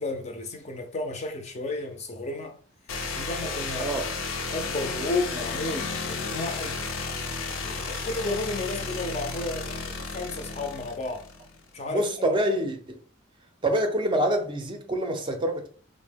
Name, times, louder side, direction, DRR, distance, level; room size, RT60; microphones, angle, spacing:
voice 1, 0.0-2.6 3.1-3.9 4.5-6.8 7.6-11.3 11.7-12.1, left 2 dB, 35° left, 0.5 m, -32 dB
sound 1, 2.9-11.6, left 4 dB, 85° left, 0.6 m, -33 dB
voice 2, 3.8-4.1 11.9-12.9 13.6-15.7, right 1 dB, 25° right, 0.4 m, -26 dB
3.7 x 2.0 x 3.4 m
head